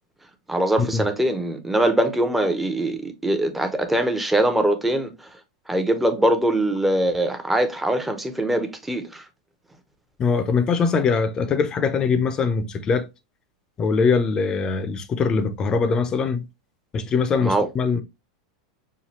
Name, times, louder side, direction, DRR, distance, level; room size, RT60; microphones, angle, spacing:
voice 1, 0.5-5.3 5.7-9.2 17.4-17.7, right 1 dB, 5° right, 0.8 m, -22 dB
voice 2, 10.2-13.1 13.8-16.4 16.9-18.0, left 5 dB, 30° left, 0.7 m, -22 dB
5.7 x 2.2 x 3.1 m
hypercardioid pair, 110°, 3 cm